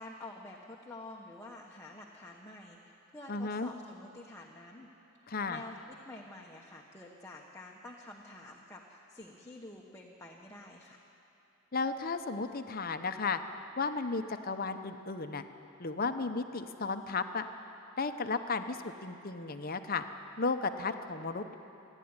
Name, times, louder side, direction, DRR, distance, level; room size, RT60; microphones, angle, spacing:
voice 1, 0.0-5.1 5.5-11.0, left 2 dB, 15° left, -1 dB, 1.1 m, -49 dB
voice 2, 3.3-3.7 5.3-5.6 11.7-13.4 13.8-15.4 15.8-17.5 18.0-20.0 20.4-21.5, left 4 dB, 45° left, 9 dB, 0.9 m, -34 dB
28.5 x 11.0 x 9.6 m, 3.0 s
head